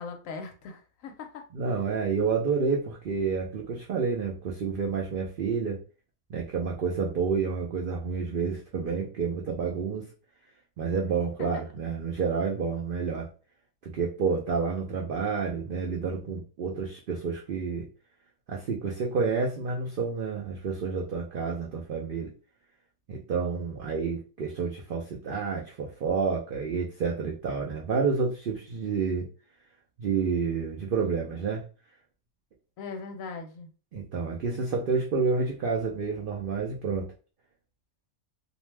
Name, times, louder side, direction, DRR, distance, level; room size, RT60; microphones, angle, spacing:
voice 1, 0.0-1.4 11.4-11.6 32.8-33.7, left 4 dB, 70° left, 5 dB, 0.9 m, -40 dB
voice 2, 1.5-5.8 6.3-10.1 10.8-13.3 13.8-17.9 18.5-22.3 23.1-29.3 30.0-31.7 33.9-37.1, right 5 dB, 75° right, 0 dB, 0.5 m, -29 dB
2.6 x 2.1 x 3.1 m, 0.35 s
omnidirectional pair, 1.5 m